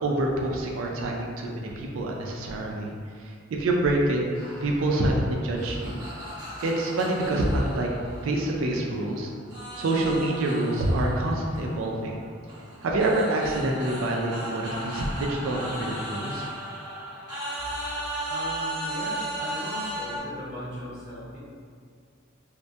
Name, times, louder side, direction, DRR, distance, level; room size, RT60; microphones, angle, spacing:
voice 1, 0.0-2.9 3.2-4.2 4.6-6.0 6.6-7.9 8.2-9.3 9.8-12.2 12.8-16.5, right 1 dB, 75° right, -1 dB, 0.4 m, -26 dB
sound 1, 4.3-9.1 9.5-20.2, right 1 dB, 20° right, 0.8 m, -36 dB
voice 2, 18.3-21.4, left 1 dB, 40° left, -11 dB, 1.0 m, -38 dB
2.2 x 2.1 x 2.6 m, 2.1 s
head